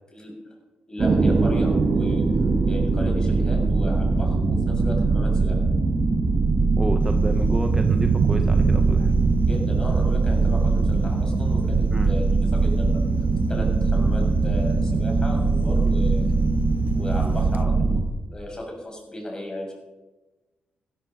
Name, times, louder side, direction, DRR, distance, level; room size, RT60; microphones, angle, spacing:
voice 1, 0.9-2.2 2.6-5.6 9.3-13.0 13.5-16.3 16.9-19.7, left 1 dB, 25° left, 0 dB, 7.0 m, -35 dB
sound 1, 1.0-18.0, right 3 dB, 40° right, 2.3 m, -21 dB
voice 2, 6.7-9.1 11.9-12.1, right 1 dB, 15° right, 5 dB, 1.3 m, -31 dB
Thunder, 7.0-17.6, right 6 dB, 60° right, 1.0 m, -30 dB
16.0 x 14.5 x 5.6 m, 1.1 s
cardioid pair, 90°, 3 cm